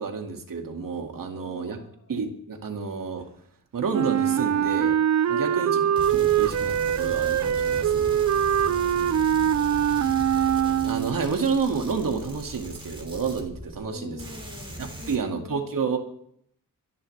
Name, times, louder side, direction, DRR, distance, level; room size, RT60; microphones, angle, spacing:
voice 1, 0.0-1.8 2.1-3.3 3.7-5.0 5.3-8.3 10.9-14.2 14.8-16.0, right 5 dB, 75° right, 3 dB, 2.3 m, -30 dB
voice 2, 1.3-2.1 5.3-6.0 8.6-10.3 13.8-15.6, left 2 dB, 55° left, 0 dB, 6.4 m, -45 dB
Wind instrument woodwind instrument, 3.9-11.3, right 9 dB, 55° right, 0.5 m, -23 dB
sound 1, 6.0-13.9 14.2-15.2, right 1 dB, 15° right, 3.0 m, -39 dB
25.5 x 11.0 x 3.4 m, 0.67 s
wide cardioid pair, 120°, 33 cm